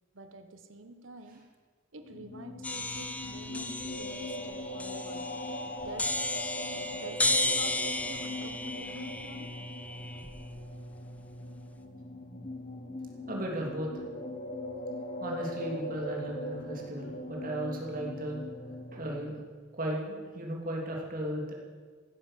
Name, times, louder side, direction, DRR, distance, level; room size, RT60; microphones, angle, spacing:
voice 1, 0.1-1.4 1.9-5.3 5.8-6.2 6.9-9.5, right 2 dB, 75° right, 7 dB, 1.2 m, -47 dB
sound 1, 2.0-19.4, left 1 dB, 35° left, 1.4 m, -40 dB
sound 2, 2.6-10.6, left 2 dB, 5° left, 0.9 m, -34 dB
voice 2, 13.3-13.9 15.2-18.4 18.9-19.4 19.7-21.5, right 1 dB, 45° right, -1 dB, 3.0 m, -35 dB
16.0 x 11.0 x 7.6 m, 1.5 s
head